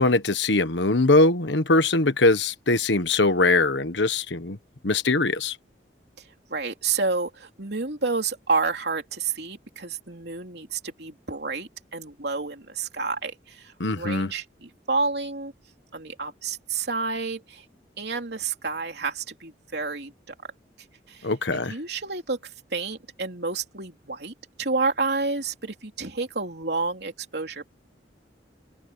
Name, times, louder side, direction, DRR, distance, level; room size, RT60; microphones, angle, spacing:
voice 1, 0.0-4.6 4.8-5.6 13.8-14.3 21.2-21.7, left 2 dB, 80° left, 1.4 m, -21 dB
voice 2, 6.2-15.5 15.9-17.7 18.0-20.3 21.1-27.7, right 4 dB, 65° right, 3.5 m, -30 dB
open air
head